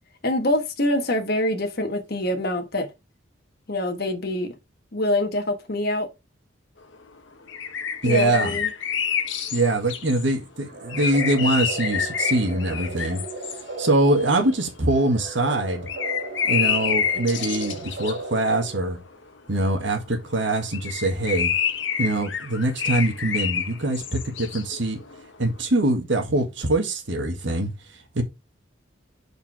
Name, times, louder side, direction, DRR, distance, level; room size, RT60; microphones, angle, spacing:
voice 1, 0.2-2.9 3.7-4.5 4.9-6.1 8.0-8.7, left 1 dB, 50° left, 1.4 m, -24 dB
sound 1, 6.9-7.0 7.5-10.2 10.9-15.1 15.5-20.3 20.6-25.5, left 7 dB, 70° left, 1.1 m, -28 dB
voice 2, 8.0-8.6 9.5-13.2 13.8-15.9 16.4-19.0 19.5-21.5 22.0-25.0 25.4-27.7 28.1-28.2, right 2 dB, 65° right, 1.7 m, -23 dB
sound 2, 10.7-19.1, right 2 dB, 50° right, 2.6 m, -36 dB
5.2 x 4.7 x 4.9 m
head